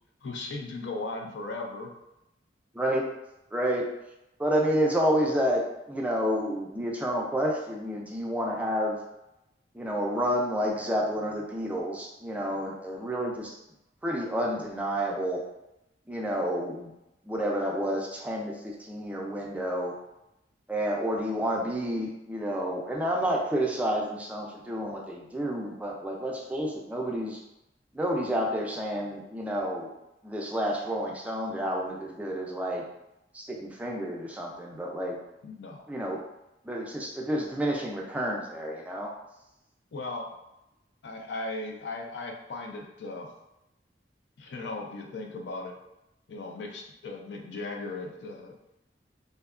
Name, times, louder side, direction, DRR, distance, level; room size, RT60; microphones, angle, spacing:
voice 1, 0.2-1.9 35.4-35.8 39.9-40.3 41.0-43.3 44.4-45.8 46.3-48.5, left 2 dB, 70° left, 2 dB, 0.4 m, -37 dB
voice 2, 2.7-3.1 3.5-3.9 4.4-5.6 5.9-9.0 9.7-13.5 14.0-15.4 16.1-16.9 17.3-19.9 20.7-27.4 27.9-29.9 30.2-32.8 33.3-35.2 35.9-36.2 36.6-39.1, equal, 10° right, -2 dB, 0.3 m, -29 dB
2.7 x 2.2 x 2.3 m, 0.88 s
head